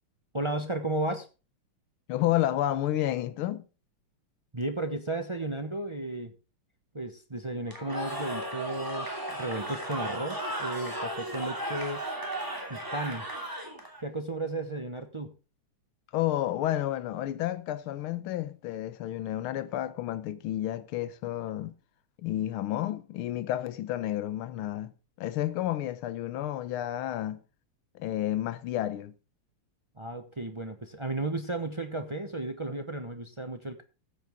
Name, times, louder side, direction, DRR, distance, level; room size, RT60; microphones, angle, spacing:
voice 1, 0.3-1.3 4.5-6.3 6.9-12.0 12.7-13.3 14.0-15.3 30.0-33.8, right 2 dB, 40° right, 0.4 m, -34 dB
voice 2, 2.1-3.7 16.1-21.8 22.2-24.9 25.2-27.4 27.9-29.1, left 13 dB, 75° left, 1.7 m, -31 dB
Cheering / Crowd, 7.7-14.0, right 1 dB, 10° right, 2.8 m, -35 dB
14.5 x 8.7 x 3.6 m
omnidirectional pair, 2.4 m